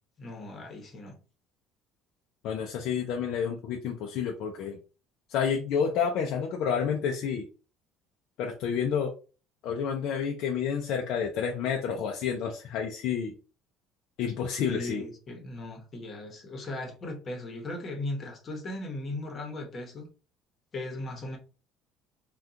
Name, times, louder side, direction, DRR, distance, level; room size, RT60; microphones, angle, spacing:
voice 1, 0.2-1.2 14.7-20.1 20.7-21.4, left 2 dB, 30° left, 1.0 m, -37 dB
voice 2, 2.4-4.8 5.3-7.5 8.4-9.1 9.6-13.3 14.2-15.0, left 7 dB, 65° left, 0.5 m, -29 dB
3.5 x 2.3 x 2.7 m
cardioid pair, 135°, 0 cm